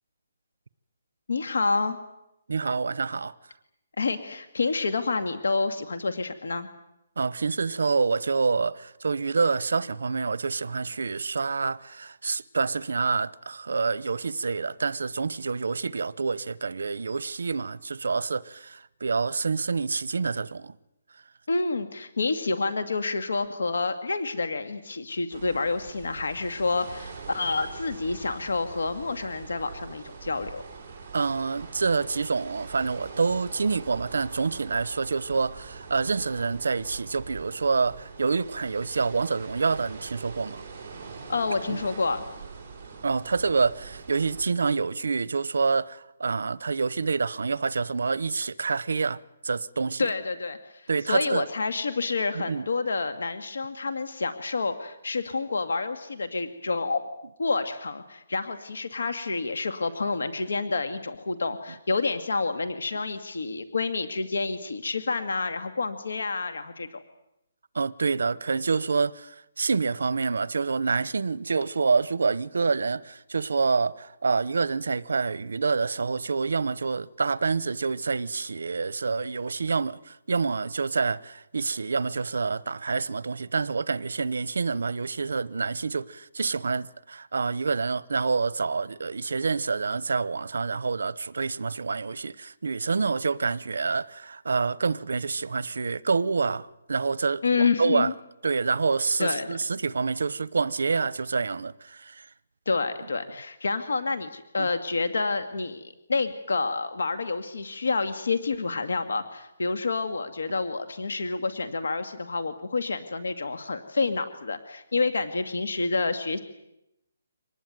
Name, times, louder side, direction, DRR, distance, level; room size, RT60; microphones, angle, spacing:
voice 1, 1.3-2.0 4.0-6.7 21.5-30.6 41.3-42.2 50.0-57.1 57.4-67.0 97.4-98.1 99.2-99.5 102.7-116.4, left 3 dB, 85° left, 2.1 m, -28 dB
voice 2, 2.5-3.3 7.2-20.7 31.1-40.6 41.7-41.8 43.0-49.2 49.4-50.1 50.9-51.4 52.3-52.6 67.7-98.1 98.4-102.3 104.6-104.7, right 4 dB, 75° right, 0.9 m, -27 dB
sound 1, 25.3-44.4, right 5 dB, 15° right, 4.6 m, -43 dB
25.0 x 19.5 x 9.4 m
hypercardioid pair, 180°, 0 cm